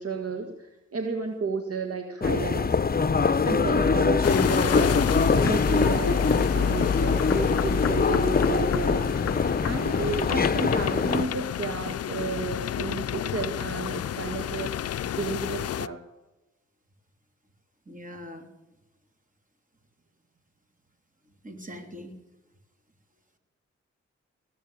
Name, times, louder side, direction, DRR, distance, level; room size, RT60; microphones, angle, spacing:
voice 1, 0.0-2.8 3.5-9.3 9.6-16.0, right 4 dB, 55° right, 6 dB, 1.7 m, -32 dB
sound 1, 2.2-11.3, left 5 dB, 30° left, 0.8 m, -23 dB
sound 2, 4.2-15.9, left 11 dB, 60° left, 0.5 m, -31 dB
voice 2, 17.9-18.5 21.4-22.1, equal, 30° right, 5 dB, 3.5 m, -41 dB
19.0 x 7.9 x 8.8 m, 1.0 s
cardioid pair, 55°, 29 cm